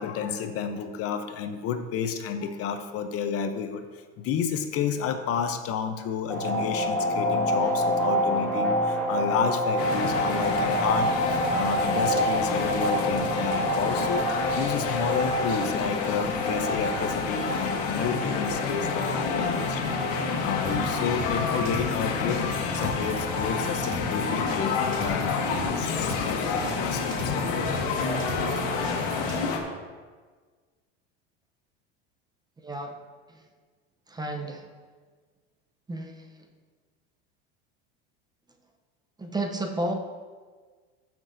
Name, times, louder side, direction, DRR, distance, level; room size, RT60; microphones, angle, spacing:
voice 1, 0.0-14.3 14.6-27.3, left 7 dB, 45° left, 8 dB, 0.7 m, -31 dB
sound 1, 6.3-24.9, equal, 5° left, 2.4 m, -29 dB
sound 2, 9.8-29.6, left 5 dB, 75° left, 1.4 m, -29 dB
sound 3, 20.6-29.4, right 2 dB, 60° right, 2.7 m, -40 dB
voice 2, 32.6-33.0 33.3-33.5 34.1-34.7 35.9-36.5 39.2-39.9, right 1 dB, 15° right, 3 dB, 0.7 m, -32 dB
14.0 x 6.0 x 2.7 m, 1.5 s
supercardioid pair, 125°, 32 cm